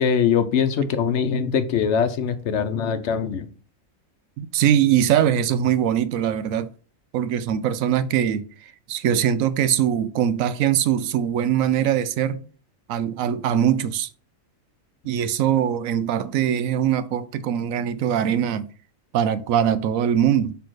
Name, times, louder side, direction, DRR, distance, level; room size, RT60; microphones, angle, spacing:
voice 1, 0.0-3.5, left 7 dB, 65° left, 0.9 m, -22 dB
voice 2, 4.4-6.7 7.1-8.4 8.9-12.4 12.9-14.1 15.0-18.7 19.1-20.6, right 9 dB, 85° right, 1.0 m, -22 dB
6.2 x 3.4 x 4.6 m
omnidirectional pair, 1.4 m